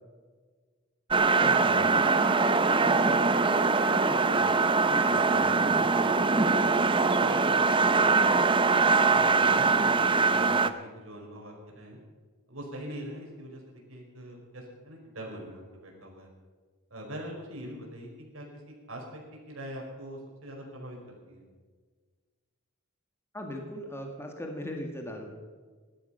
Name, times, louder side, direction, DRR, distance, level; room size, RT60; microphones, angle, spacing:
sound 1, 1.1-10.7, right 4 dB, 25° right, 0.6 m, -23 dB
voice 1, 1.4-5.9 23.3-25.4, equal, 10° left, 2 dB, 1.9 m, -39 dB
voice 2, 7.2-12.0 12.5-16.3 16.9-19.2 19.5-21.4, equal, 70° right, 0 dB, 4.7 m, -43 dB
17.0 x 12.5 x 5.7 m, 1.5 s
head